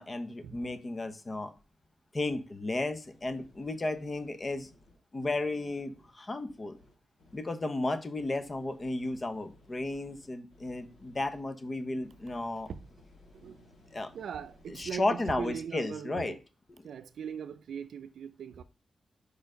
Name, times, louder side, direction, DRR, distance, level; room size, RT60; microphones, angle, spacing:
voice 1, 0.0-1.5 2.1-4.7 5.1-6.8 7.3-12.7 13.9-14.1 14.7-16.3, left 2 dB, 35° left, 1.0 m, -34 dB
sound 1, 3.0-6.1 6.5-7.4 7.9-11.4 12.0-15.6, left 1 dB, 90° left, 3.4 m, -60 dB
voice 2, 13.3-13.6 14.1-16.4 16.8-18.6, right 7 dB, 85° right, 0.5 m, -40 dB
5.0 x 4.5 x 5.1 m
cardioid pair, 65°, 0 cm